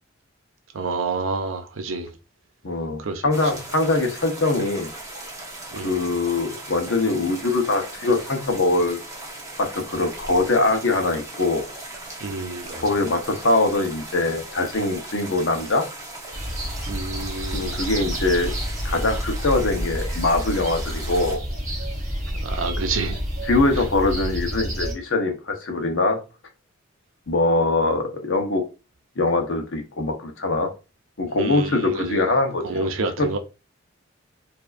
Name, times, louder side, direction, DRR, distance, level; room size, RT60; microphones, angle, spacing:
voice 1, 0.7-2.1 3.0-3.2 5.7-6.0 12.2-12.8 16.9-17.8 22.4-23.2 31.4-32.3 32.6-33.4, right 3 dB, 85° right, 0.7 m, -28 dB
voice 2, 2.6-4.9 5.8-9.0 9.6-11.6 12.8-15.8 17.5-18.5 18.8-21.4 23.4-26.2 27.3-28.6 29.2-30.7 31.2-32.9 33.2-33.3, left 2 dB, 70° left, 0.9 m, -22 dB
sound 1, 3.3-21.4, right 2 dB, 15° right, 1.0 m, -38 dB
sound 2, 16.3-24.9, equal, 35° right, 1.4 m, -29 dB
4.7 x 2.7 x 2.5 m
head